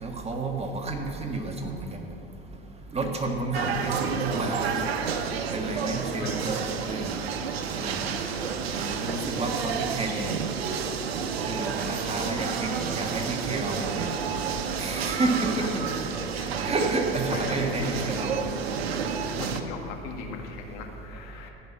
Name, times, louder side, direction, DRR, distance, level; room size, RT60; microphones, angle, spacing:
voice 1, 0.0-2.0 2.9-4.9 5.5-7.1 7.7-8.1 8.7-10.3 11.5-14.1 14.8-15.7 16.6-18.4, right 2 dB, 20° right, 2 dB, 1.6 m, -30 dB
sound 1, 3.5-19.6, right 6 dB, 90° right, 0.9 m, -30 dB
voice 2, 3.6-4.0 6.2-6.7 11.7-12.6 15.6-16.0 16.3-16.5 17.3-17.6 17.9-18.6 19.3-21.5, left 4 dB, 60° left, 2 dB, 1.9 m, -39 dB
15.5 x 5.8 x 7.4 m, 2.8 s
hypercardioid pair, 90°, 30 cm